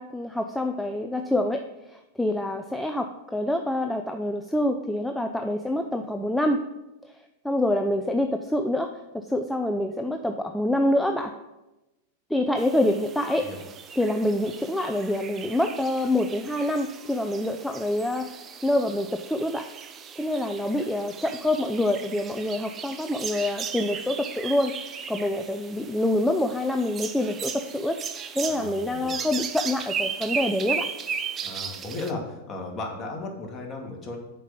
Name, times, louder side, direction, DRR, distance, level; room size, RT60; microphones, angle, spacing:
voice 1, 0.0-1.6 1.9-6.6 7.1-11.3 12.3-13.5 14.0-18.3 18.6-19.7 20.2-24.7 25.1-28.0 28.4-30.9, left 1 dB, 5° left, 4 dB, 0.6 m, -26 dB
forest birds summer sweden, 12.6-32.1, right 7 dB, 30° right, 0.8 m, -36 dB
voice 2, 28.5-29.2 31.4-34.2, left 2 dB, 25° left, 0 dB, 2.4 m, -35 dB
7.3 x 5.3 x 7.1 m, 0.99 s
hypercardioid pair, 100°, 0 cm